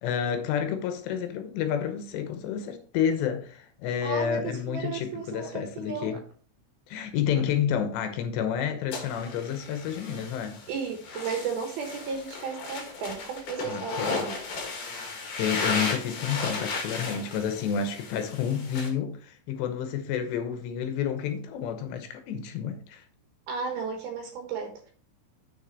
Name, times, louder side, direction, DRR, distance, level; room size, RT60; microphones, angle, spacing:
voice 1, 0.0-6.2 6.9-10.6 13.7-14.2 15.4-23.0, left 8 dB, 75° left, 2.8 m, -30 dB
voice 2, 4.0-6.2 10.7-14.3 23.5-24.9, right 5 dB, 70° right, 2.6 m, -34 dB
sound 1, 8.9-18.9, left 4 dB, 55° left, 2.5 m, -35 dB
6.7 x 6.4 x 4.0 m
omnidirectional pair, 5.6 m